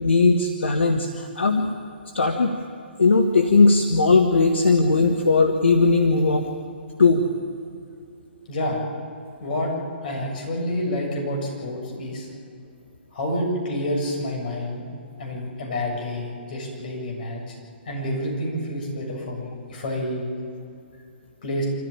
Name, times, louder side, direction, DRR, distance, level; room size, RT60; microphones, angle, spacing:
voice 1, 0.0-1.7 2.1-2.6 3.0-6.5 7.0-7.3, left 3 dB, 80° left, 4 dB, 1.6 m, -18 dB
voice 2, 8.5-8.9 9.4-9.7 10.0-12.3 13.1-14.8 15.2-17.5 17.9-20.4 21.4-21.6, left 1 dB, 50° left, 0 dB, 7.7 m, -28 dB
26.5 x 14.5 x 9.0 m, 2.4 s
figure-of-eight pair, 135°, 6 cm